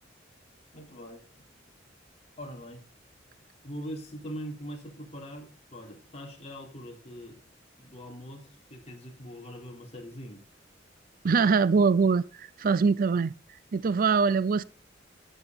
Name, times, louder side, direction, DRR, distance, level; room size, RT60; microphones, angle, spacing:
voice 1, 0.7-1.2 2.4-2.8 3.6-7.4 7.8-10.4, equal, 35° left, 3.7 m, -42 dB
voice 2, 11.2-13.3 13.7-14.6, right 5 dB, 50° right, 0.4 m, -23 dB
12.5 x 8.9 x 4.1 m
head